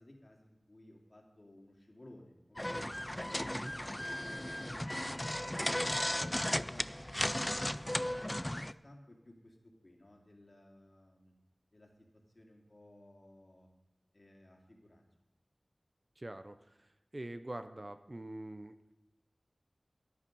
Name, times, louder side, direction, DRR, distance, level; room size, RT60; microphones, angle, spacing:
voice 1, 0.0-2.9 3.3-6.9 7.3-11.3 11.7-13.7 14.1-15.0, left 1 dB, 50° left, 0 dB, 2.8 m, -58 dB
sound 1, 2.6-8.7, left 1 dB, 15° left, 0.4 m, -35 dB
voice 2, 16.2-18.9, right 1 dB, 35° right, 9 dB, 0.6 m, -45 dB
14.0 x 10.0 x 5.4 m, 0.91 s
wide cardioid pair, 65°, 0 cm